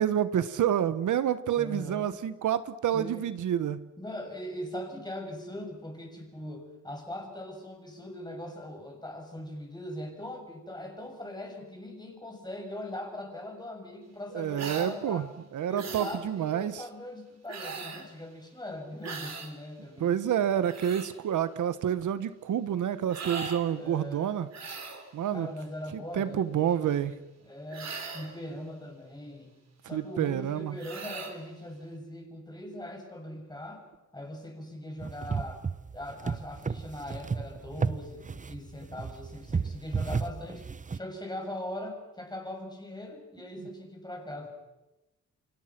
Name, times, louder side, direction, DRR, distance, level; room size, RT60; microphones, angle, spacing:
voice 1, 0.0-3.9 14.3-15.3 15.5-16.8 20.0-24.5 25.1-25.5 25.9-27.1 29.9-30.8, right 10 dB, 85° right, 13 dB, 1.2 m, -28 dB
voice 2, 1.5-2.1 2.9-3.3 4.0-15.3 15.7-20.2 23.7-24.5 25.3-29.5 29.8-33.8 34.1-35.6 35.9-40.6 40.9-44.5, left 1 dB, 15° left, 3 dB, 6.7 m, -41 dB
sound 1, 14.5-14.9 15.8-16.2 17.5-18.1 19.0-19.5 20.4-21.1 23.1-23.6 24.5-25.1 27.7-28.3 30.8-31.4, right 5 dB, 60° right, 4.3 m, -39 dB
sound 2, 35.0-41.0, right 5 dB, 25° right, 0.8 m, -33 dB
29.0 x 25.0 x 6.0 m, 1.0 s
cardioid pair, 105°, 30 cm